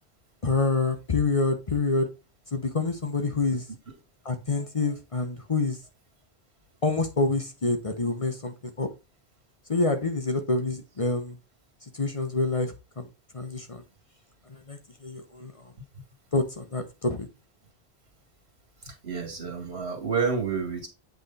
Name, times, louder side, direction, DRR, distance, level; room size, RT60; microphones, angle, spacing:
voice 1, 0.4-2.1 2.5-3.7 4.2-5.8 6.8-8.9 9.7-11.4 11.9-13.1 13.3-13.8 14.5-15.5 16.3-17.3, left 3 dB, 35° left, 0.8 m, -27 dB
voice 2, 18.8-20.9, right 5 dB, 80° right, 2.4 m, -29 dB
8.0 x 3.3 x 4.0 m
omnidirectional pair, 1.1 m